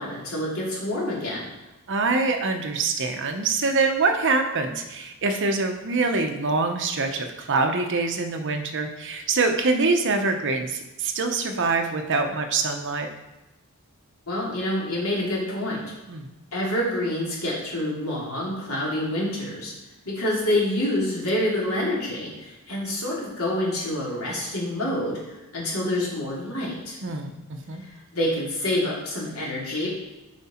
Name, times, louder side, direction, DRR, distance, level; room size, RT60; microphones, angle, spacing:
voice 1, 0.0-1.5 14.3-15.8 16.5-19.7 20.0-27.0 27.8-29.9, left 1 dB, 80° left, -4 dB, 2.7 m, -27 dB
voice 2, 1.9-13.1 16.1-16.3 27.0-27.8, right 3 dB, 60° right, 5 dB, 0.9 m, -25 dB
7.5 x 5.1 x 4.3 m, 1.0 s
head